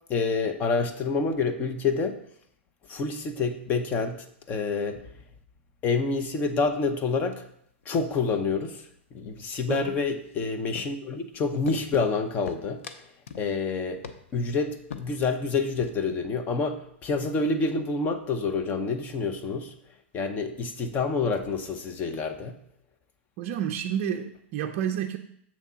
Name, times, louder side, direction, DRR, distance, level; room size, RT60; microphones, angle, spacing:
voice 1, 0.1-2.2 2.9-5.0 5.8-7.4 7.9-8.9 9.1-12.8 13.4-14.0 14.3-19.7 20.1-22.6, left 4 dB, 25° left, 8 dB, 0.7 m, -28 dB
sound 1, 7.5-7.9 8.1-8.5 8.8-9.5 9.8-11.2 11.7-12.1 12.4-13.5 13.8-13.9 14.0-14.5 14.9-15.3 15.6-16.1, left 6 dB, 80° left, 0.7 m, -42 dB
voice 2, 9.6-10.0 23.4-25.2, right 9 dB, 40° right, 3 dB, 0.4 m, -30 dB
7.3 x 3.6 x 5.6 m, 0.71 s
hypercardioid pair, 140°, 7 cm